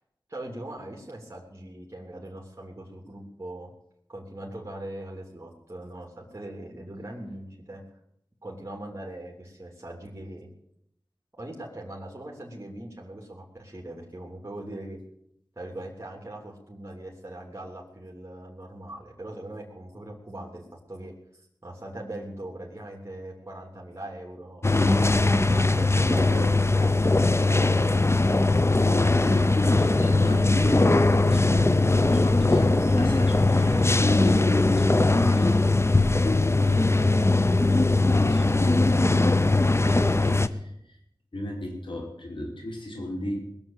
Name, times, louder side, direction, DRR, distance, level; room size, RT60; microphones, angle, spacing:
voice 1, 0.3-3.7 4.1-7.8 8.4-10.5 11.4-15.0 15.5-28.0, right 1 dB, 35° right, -2 dB, 3.3 m, -40 dB
sound 1, 24.6-40.5, left 2 dB, 30° left, 0.8 m, -21 dB
voice 2, 28.7-35.6 36.5-39.3 39.7-40.7 41.3-43.4, equal, 80° left, -1 dB, 5.2 m, -33 dB
20.0 x 7.1 x 8.9 m, 0.75 s
wide cardioid pair, 45°, 8 cm